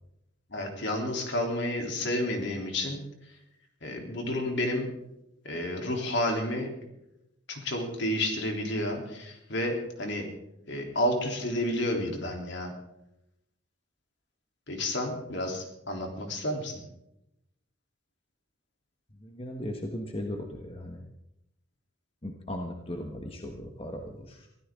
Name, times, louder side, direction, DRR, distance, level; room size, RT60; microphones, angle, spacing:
voice 1, 0.5-3.0 3.8-4.9 5.4-6.7 7.5-10.3 10.7-12.7 14.7-16.8, left 1 dB, 60° left, 2 dB, 3.3 m, -30 dB
voice 2, 19.2-21.0 22.2-24.5, left 1 dB, 30° left, 2 dB, 1.4 m, -37 dB
23.5 x 15.5 x 3.7 m, 0.85 s
head